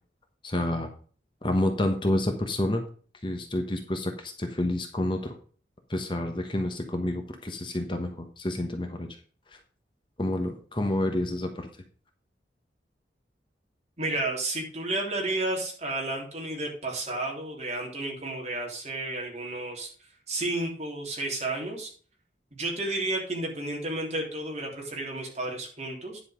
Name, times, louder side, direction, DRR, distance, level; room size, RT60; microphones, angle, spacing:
voice 1, 0.4-0.9 1.4-2.8 3.2-5.4 5.9-9.1 9.5-9.6 10.2-11.7, left 1 dB, 30° left, 5 dB, 1.1 m, -29 dB
voice 2, 14.0-19.9 20.3-21.9 22.5-26.2, right 2 dB, 40° right, -1 dB, 3.3 m, -32 dB
10.5 x 5.6 x 5.1 m, 0.42 s
head